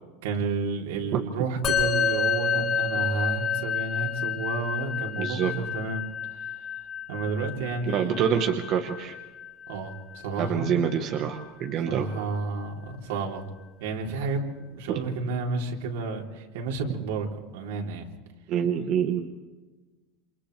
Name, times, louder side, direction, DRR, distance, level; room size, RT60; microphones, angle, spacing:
voice 1, 0.2-6.0 6.3-6.7 7.1-8.3 9.7-10.7 11.9-13.4 13.8-17.3 17.5-18.0, right 3 dB, 75° right, 0 dB, 3.6 m, -31 dB
Musical instrument, 1.6-11.2, left 6 dB, 25° left, 4.3 m, -30 dB
voice 2, 5.2-5.5 7.9-9.1 10.4-12.1 18.5-19.3, right 8 dB, 35° right, 4 dB, 1.2 m, -26 dB
28.5 x 28.0 x 3.4 m, 1.2 s
supercardioid pair, 180°, 0 cm